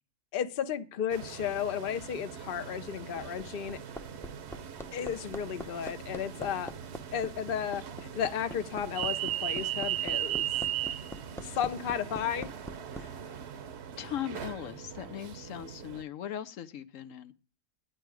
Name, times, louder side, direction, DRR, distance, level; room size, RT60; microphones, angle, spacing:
voice 1, 0.3-3.8 4.9-6.7 7.1-10.5 11.4-12.5 13.0-13.1, left 8 dB, 50° left, 0.9 m, -34 dB
sound 1, 1.1-16.0, right 11 dB, 60° right, 1.0 m, -38 dB
Hammer, 3.1-13.0 14.4-14.5, equal, 5° left, 0.5 m, -43 dB
voice 2, 14.0-17.3, left 10 dB, 80° left, 1.1 m, -39 dB
10.5 x 9.1 x 4.7 m
omnidirectional pair, 1.4 m